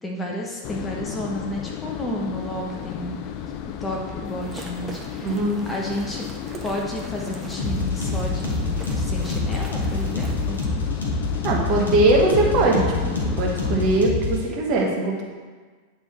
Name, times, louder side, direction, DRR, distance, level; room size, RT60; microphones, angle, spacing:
voice 1, 0.0-3.2 3.8-5.4 5.7-6.3 6.6-10.6, equal, 10° left, -1 dB, 0.8 m, -31 dB
sound 1, 0.6-14.1, left 9 dB, 40° left, 0.4 m, -34 dB
sound 2, 4.3-10.7, right 3 dB, 15° right, 0.8 m, -42 dB
voice 2, 5.2-5.6 11.4-15.2, right 2 dB, 35° right, -2 dB, 1.4 m, -21 dB
sound 3, 7.6-14.4, left 3 dB, 70° left, 1.6 m, -26 dB
9.2 x 3.5 x 4.4 m, 1.5 s
figure-of-eight pair, 90°, 0 cm